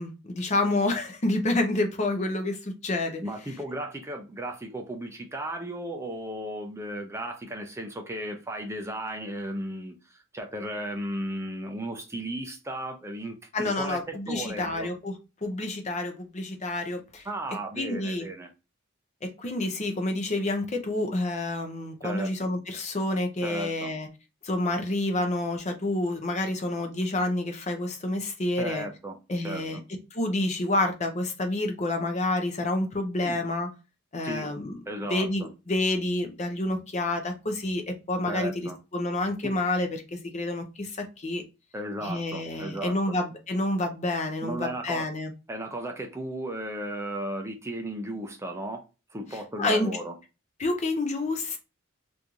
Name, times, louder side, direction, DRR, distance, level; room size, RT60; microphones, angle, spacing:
voice 1, 0.0-3.2 13.5-15.2 15.4-17.3 17.8-18.3 19.2-24.1 24.4-28.9 29.3-29.8 30.1-33.7 34.1-34.7 35.1-41.4 42.0-45.3 49.6-49.9 50.6-51.6, left 2 dB, 35° left, 0.6 m, -28 dB
voice 2, 3.2-14.9 17.2-18.5 22.0-22.3 23.4-23.9 28.6-29.2 29.4-29.8 33.2-33.4 34.2-34.5 34.9-35.5 38.3-38.8 39.4-39.5 41.7-43.2 44.4-45.1 45.5-48.8 49.1-50.1, right 1 dB, 15° right, 0.5 m, -35 dB
3.0 x 2.6 x 3.5 m
head